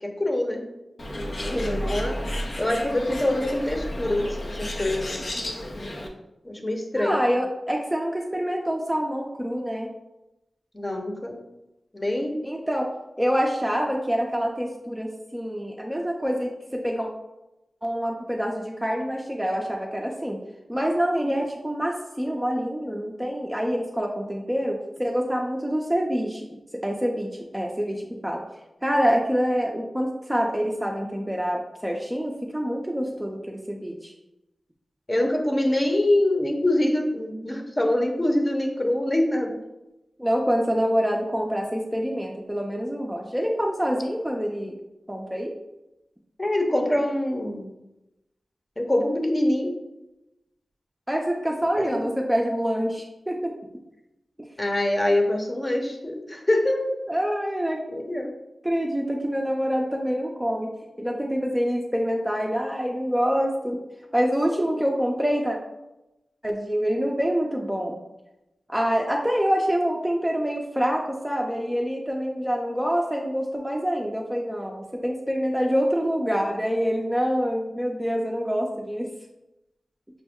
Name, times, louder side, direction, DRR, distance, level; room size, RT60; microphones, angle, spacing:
voice 1, 0.0-0.6 1.1-2.2 2.6-5.2 6.4-7.2 10.7-11.4 11.9-12.4 35.1-39.5 46.4-47.7 48.8-49.7 51.8-51.9 54.6-57.0 57.9-58.3, left 1 dB, 30° left, 1 dB, 0.9 m, -24 dB
Bird, 1.0-6.1, left 1 dB, 60° left, 0.7 m, -32 dB
voice 2, 1.5-1.9 7.0-9.9 12.4-12.9 13.2-17.1 17.8-20.4 20.7-28.5 28.8-34.1 40.2-44.8 45.1-45.5 51.1-53.5 57.1-57.8 58.6-60.7 61.0-63.8 64.1-65.6 66.4-68.0 68.7-79.1, equal, 10° right, 0 dB, 0.6 m, -26 dB
6.0 x 2.1 x 3.6 m, 0.94 s
cardioid pair, 45°, 0 cm